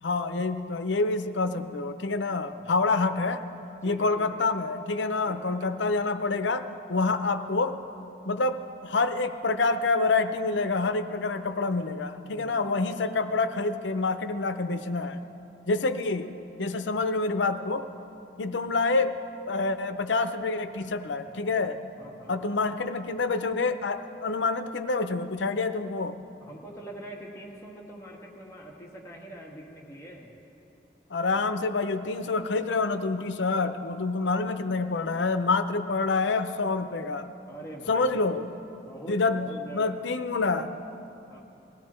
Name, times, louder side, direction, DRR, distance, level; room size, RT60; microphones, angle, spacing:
voice 1, 0.0-3.4 3.8-6.6 6.9-7.7 8.3-15.2 15.7-16.3 16.6-17.8 18.4-19.1 19.5-21.8 22.3-26.1 31.1-37.3 37.9-38.5 39.1-39.5 39.7-40.7, left 3 dB, 85° left, 10 dB, 0.7 m, -27 dB
voice 2, 2.4-2.8 3.8-4.4 5.2-5.6 12.2-12.7 21.2-21.4 22.0-22.4 26.4-30.3 31.4-31.5 34.2-34.4 37.5-38.4 38.8-39.9 41.3-41.4, right 1 dB, 15° left, -3 dB, 1.7 m, -44 dB
20.5 x 15.0 x 4.4 m, 2.8 s
head